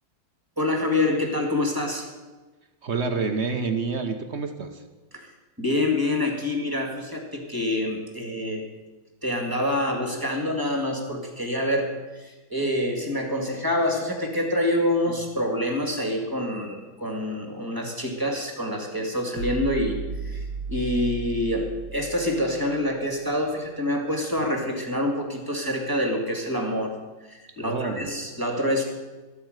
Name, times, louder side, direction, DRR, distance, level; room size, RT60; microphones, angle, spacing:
voice 1, 0.6-2.1 5.1-8.6 9.2-26.9 27.2-28.8, left 1 dB, 10° right, 2 dB, 2.0 m, -26 dB
voice 2, 2.8-4.8 27.6-28.1, right 4 dB, 45° right, 6 dB, 1.0 m, -28 dB
sound 1, 19.4-22.8, right 4 dB, 90° right, 1.7 m, -34 dB
13.5 x 8.6 x 7.9 m, 1.2 s
omnidirectional pair, 2.2 m